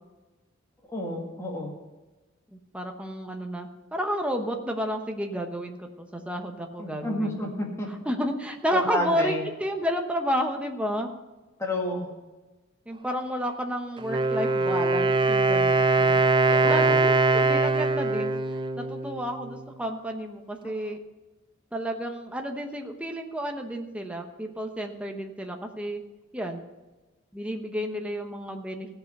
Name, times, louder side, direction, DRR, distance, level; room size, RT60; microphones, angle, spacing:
voice 1, 0.9-1.7 6.8-7.9 8.7-9.4 11.6-12.1 16.0-16.2 16.5-17.0 20.6-20.7, left 1 dB, 15° left, -1 dB, 1.9 m, -31 dB
voice 2, 2.7-7.3 8.1-11.1 12.9-15.9 16.5-21.0 21.7-26.0 26.3-26.6 27.3-28.9, equal, 5° right, 3 dB, 0.9 m, -31 dB
Wind instrument woodwind instrument, 14.0-19.7, right 3 dB, 25° right, 0.4 m, -23 dB
16.0 x 5.6 x 6.7 m, 1.2 s
head